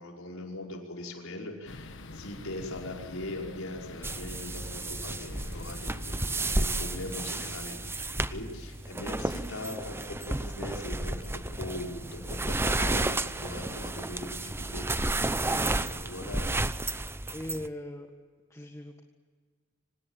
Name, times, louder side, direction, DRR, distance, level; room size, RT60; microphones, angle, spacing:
voice 1, 0.0-16.6, left 1 dB, 90° left, 0 dB, 5.4 m, -41 dB
sound 1, 1.7-7.6, left 2 dB, 60° left, 1.5 m, -45 dB
sound 2, 4.0-17.7, right 2 dB, 10° right, 0.7 m, -32 dB
voice 2, 15.4-15.9 17.3-18.1 18.5-19.0, left 1 dB, 15° left, 3 dB, 1.6 m, -40 dB
25.5 x 19.0 x 9.1 m, 1.5 s
head